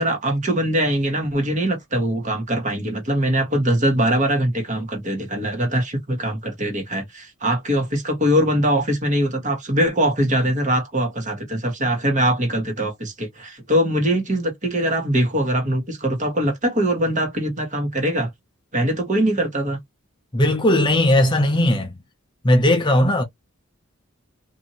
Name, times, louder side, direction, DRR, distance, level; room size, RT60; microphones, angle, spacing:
voice 1, 0.0-18.3 18.7-19.8, right 1 dB, 35° right, 1.1 m, -22 dB
voice 2, 20.3-21.9 22.4-23.2, left 1 dB, 20° left, 0.6 m, -17 dB
2.8 x 2.6 x 2.8 m
head